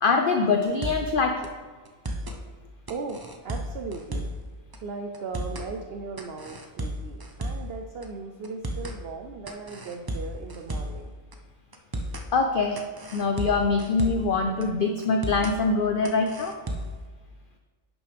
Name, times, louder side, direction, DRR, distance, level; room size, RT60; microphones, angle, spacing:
voice 1, 0.0-1.5 12.3-12.8 13.1-16.5, left 4 dB, 60° left, 5 dB, 0.5 m, -24 dB
sound 1, 0.6-1.1 1.4-1.5 1.8-2.4 2.9-4.4 4.7-4.8 5.1-5.7 6.2-7.7 8.0-8.1 8.4-9.0 9.5-11.0 11.3-11.4 11.7-12.3 12.8-14.3 14.6-14.7 15.0-15.6 16.0-17.0, right 1 dB, 35° right, 0.4 m, -33 dB
voice 2, 2.9-4.3 4.8-11.1, right 4 dB, 60° right, 4 dB, 0.7 m, -37 dB
10.5 x 6.2 x 3.4 m, 1.4 s
omnidirectional pair, 1.4 m